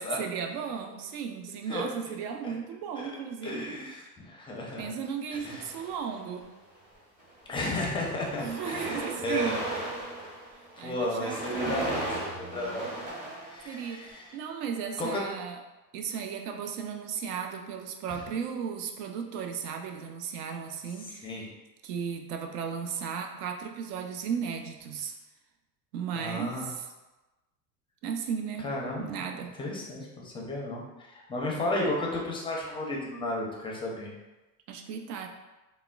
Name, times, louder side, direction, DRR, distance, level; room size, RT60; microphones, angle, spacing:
voice 1, 0.0-3.7 4.8-6.5 8.4-9.6 10.8-11.9 13.6-15.6 15.9-21.4 21.8-25.1 25.9-26.9 28.0-28.7 29.0-29.5 34.7-35.3, right 7 dB, 70° right, 5 dB, 0.6 m, -35 dB
voice 2, 3.4-4.9 5.3-5.7 7.5-9.6 10.8-12.9 13.4-14.2 15.0-15.2 18.1-18.2 21.2-21.5 26.2-26.7 28.6-29.2 29.6-34.1, left 1 dB, 10° left, -2 dB, 0.5 m, -33 dB
sound 1, 5.4-6.4 7.2-7.4 7.7-14.2, right 1 dB, 15° right, 0.8 m, -37 dB
3.5 x 2.1 x 2.2 m, 1.1 s
hypercardioid pair, 90°, 49 cm